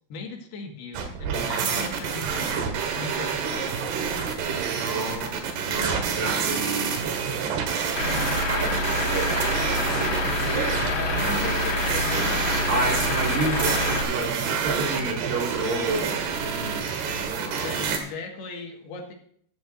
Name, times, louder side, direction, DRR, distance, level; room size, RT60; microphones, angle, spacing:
voice 1, 0.1-2.7 2.9-4.2 10.4-10.5 10.8-12.9 17.6-19.1, left 4 dB, 75° left, 1 dB, 3.8 m, -38 dB
sound 1, 0.9-18.0, right 6 dB, 80° right, 3.7 m, -28 dB
voice 2, 4.8-7.0 7.9-10.8 11.1-11.4 12.7-17.8, right 2 dB, 60° right, -1 dB, 4.0 m, -31 dB
Truck / Idling, 8.0-14.0, left 2 dB, 40° left, 2.1 m, -26 dB
14.0 x 14.0 x 2.7 m, 0.62 s
omnidirectional pair, 4.6 m